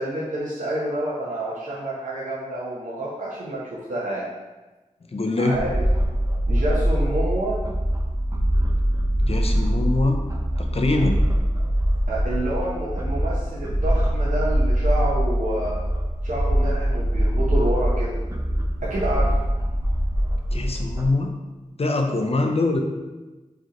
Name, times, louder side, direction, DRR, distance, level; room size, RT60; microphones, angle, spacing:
voice 1, 0.0-4.3 5.4-5.8 6.5-7.6 12.1-15.8 16.2-18.2 18.8-19.3, right 1 dB, 80° right, -7 dB, 0.8 m, -28 dB
voice 2, 5.1-5.6 9.2-10.2 10.6-11.2 20.5-21.3 21.8-22.8, left 2 dB, 50° left, 3 dB, 0.6 m, -23 dB
sound 1, 5.5-21.1, equal, 25° right, 0.5 m, -23 dB
4.6 x 3.3 x 3.0 m, 1.2 s
wide cardioid pair, 55°, 13 cm